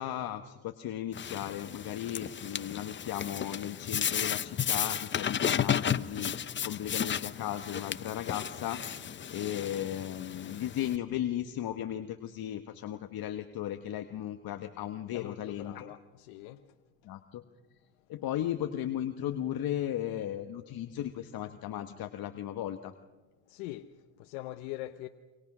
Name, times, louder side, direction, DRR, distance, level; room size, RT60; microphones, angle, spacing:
voice 1, 0.0-8.8 9.3-15.9 17.0-17.4 18.1-22.9, left 11 dB, 55° left, 1.4 m, -36 dB
sound 1, 1.1-11.0, left 8 dB, 25° left, 0.7 m, -34 dB
voice 2, 15.1-16.6 23.5-23.9 24.2-25.1, left 16 dB, 85° left, 1.0 m, -42 dB
28.0 x 25.0 x 6.2 m
supercardioid pair, 100°, 44 cm